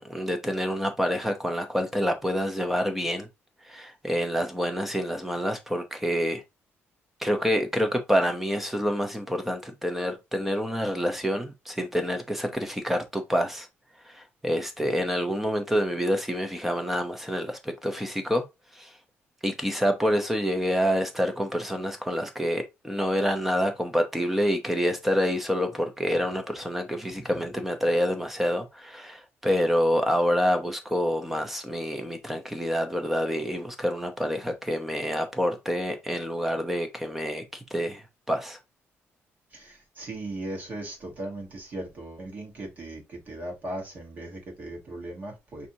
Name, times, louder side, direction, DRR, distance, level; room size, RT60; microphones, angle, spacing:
voice 1, 0.0-3.3 3.6-6.4 7.2-13.7 14.1-18.4 18.7-18.9 19.4-38.6, equal, 5° right, 0.7 m, -27 dB
voice 2, 39.5-45.7, right 1 dB, 35° right, 1.3 m, -38 dB
5.8 x 2.7 x 2.8 m
cardioid pair, 165°, 5 cm